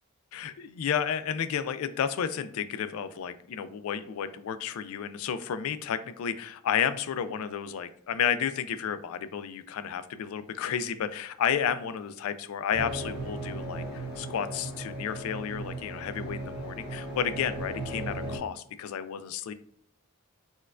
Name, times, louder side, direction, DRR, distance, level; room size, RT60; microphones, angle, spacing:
voice 1, 0.3-19.5, left 8 dB, 85° left, 13 dB, 0.3 m, -32 dB
sound 1, 12.7-18.4, right 1 dB, 5° right, 1.1 m, -37 dB
4.3 x 2.3 x 2.3 m, 0.69 s
head